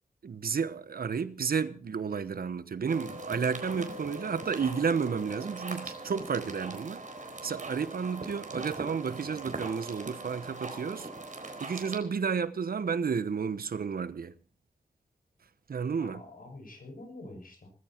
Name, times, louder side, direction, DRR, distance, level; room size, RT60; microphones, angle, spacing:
voice 1, 0.2-11.1 11.6-14.4 15.7-16.2, right 6 dB, 85° right, 1.0 m, -32 dB
sound 1, 2.9-12.0, right 2 dB, 60° right, 4.3 m, -41 dB
voice 2, 15.9-17.7, left 2 dB, 70° left, 6.9 m, -46 dB
19.5 x 14.5 x 4.5 m
wide cardioid pair, 70°, 15 cm